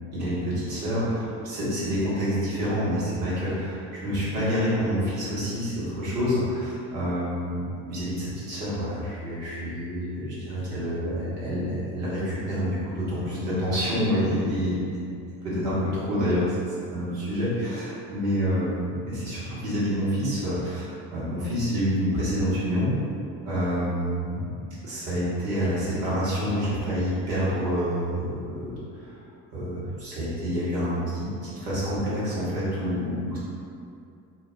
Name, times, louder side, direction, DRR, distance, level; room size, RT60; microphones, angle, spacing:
voice 1, 0.1-15.1 15.4-16.6 16.9-22.9 23.4-24.5 24.8-29.2 29.5-31.3 31.6-33.4, equal, 65° right, -9 dB, 1.2 m, -27 dB
2.4 x 2.1 x 3.3 m, 2.5 s
figure-of-eight pair, 50°, 50 cm